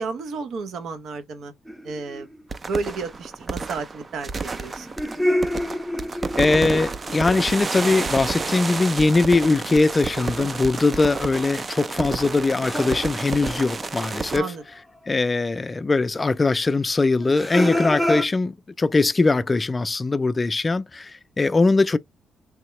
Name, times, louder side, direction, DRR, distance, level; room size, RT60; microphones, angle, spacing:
voice 1, 0.0-1.5 1.8-2.3 2.6-4.9 10.5-10.7 14.3-14.6, right 4 dB, 70° right, 0.8 m, -32 dB
sound 1, 1.7-2.4 4.5-7.1 10.1-10.7 11.0-14.6 15.1-15.2 17.2-18.3, left 1 dB, 5° right, 0.7 m, -28 dB
sound 2, 2.5-14.4, right 4 dB, 35° right, 0.5 m, -30 dB
voice 2, 6.4-14.5 15.1-22.0, left 3 dB, 25° left, 0.4 m, -21 dB
3.6 x 2.8 x 3.1 m
cardioid pair, 90°, 0 cm